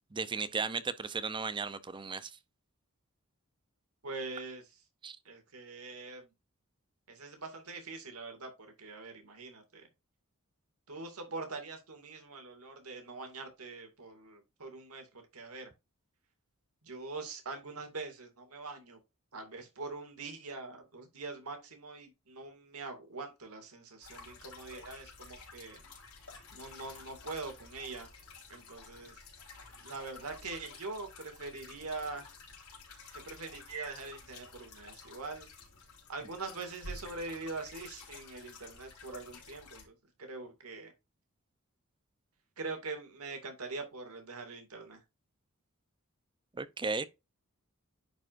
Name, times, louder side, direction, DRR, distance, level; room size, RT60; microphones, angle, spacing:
voice 1, 0.1-2.4 5.0-5.2 46.5-47.1, right 4 dB, 20° right, 0.6 m, -35 dB
voice 2, 4.0-4.6 5.3-6.3 7.1-8.5 8.8-9.8 10.9-15.7 16.8-19.0 19.3-25.8 26.5-28.1 28.5-29.2 29.8-32.2 33.1-35.5 36.1-40.9 42.6-45.0, right 3 dB, 85° right, 2.3 m, -43 dB
sound 1, 24.0-39.9, left 3 dB, 85° left, 3.8 m, -51 dB
10.5 x 4.8 x 2.6 m
head